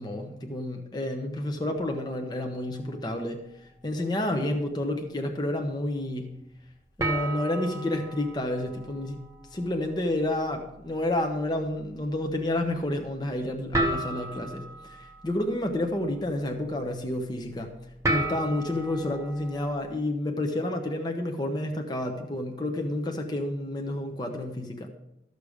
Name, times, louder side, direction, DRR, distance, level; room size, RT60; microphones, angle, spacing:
voice 1, 0.0-6.3 7.0-9.2 9.5-17.7 18.1-24.9, left 1 dB, 25° left, 3 dB, 0.9 m, -30 dB
sound 1, 1.7-3.3 3.7-4.0 4.6-4.7 7.0-20.0, right 1 dB, 15° right, 1.2 m, -36 dB
13.5 x 6.8 x 5.0 m, 0.84 s
head